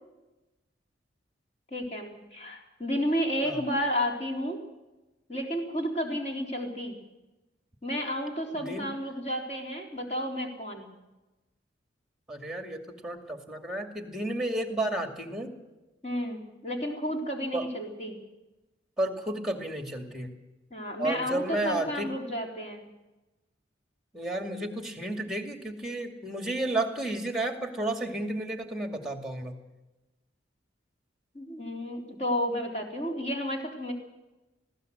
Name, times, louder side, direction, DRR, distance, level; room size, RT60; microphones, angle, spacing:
voice 1, 1.7-4.6 5.3-7.0 7.8-10.9 16.0-18.2 20.7-22.8 31.3-33.9, equal, 35° left, 1 dB, 3.9 m, -32 dB
voice 2, 8.5-8.9 12.3-15.5 17.5-17.6 19.0-20.3 21.0-22.1 24.1-29.5, right 1 dB, ahead, 5 dB, 2.5 m, -32 dB
20.5 x 16.0 x 7.9 m, 1.0 s
head